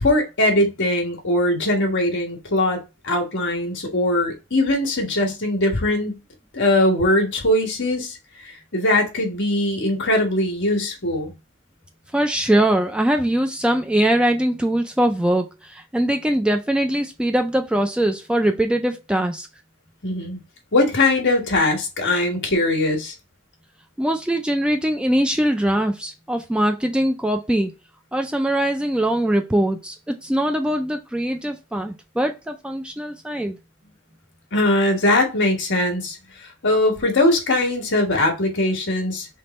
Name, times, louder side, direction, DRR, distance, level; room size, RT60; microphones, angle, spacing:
voice 1, 0.0-6.2 6.5-8.2 8.4-11.3 20.0-20.4 20.7-23.1 34.5-39.3, left 1 dB, 55° left, 1.4 m, -21 dB
voice 2, 12.1-19.5 24.0-27.8 28.1-33.6, right 1 dB, 5° right, 0.3 m, -22 dB
3.4 x 3.3 x 4.0 m
head